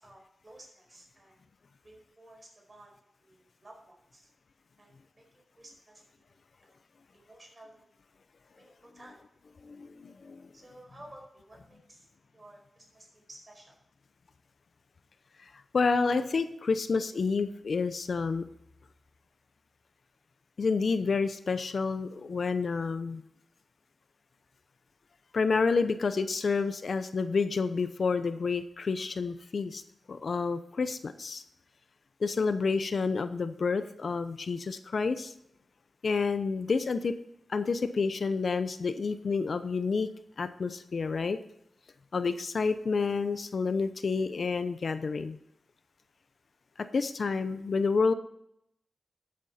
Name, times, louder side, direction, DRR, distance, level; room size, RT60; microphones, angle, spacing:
voice 1, 0.0-1.4 1.8-2.9 3.2-4.3 4.8-6.3 6.6-6.8 7.1-8.0 8.6-9.2 10.5-13.7, right 1 dB, 25° right, 0 dB, 4.9 m, -54 dB
voice 2, 9.6-10.4 15.4-18.4 20.6-23.2 25.3-29.8 30.1-31.4 32.2-35.3 36.0-37.1 37.5-40.1 40.4-41.4 42.1-45.4 46.8-48.1, left 4 dB, 60° left, 11 dB, 0.7 m, -29 dB
13.0 x 8.7 x 4.3 m, 0.75 s
wide cardioid pair, 100°, 0 cm